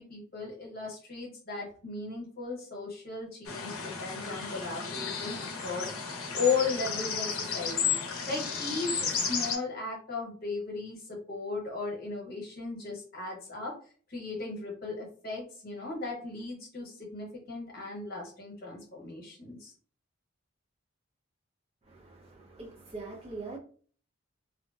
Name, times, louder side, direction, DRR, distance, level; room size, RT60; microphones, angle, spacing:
voice 1, 0.0-7.9 8.3-13.7 14.1-19.7, left 4 dB, 45° left, 0.9 m, -36 dB
sound 1, 3.5-9.6, left 6 dB, 85° left, 0.6 m, -33 dB
voice 2, 21.8-23.6, right 3 dB, 30° right, 0.5 m, -43 dB
2.6 x 2.1 x 2.3 m
head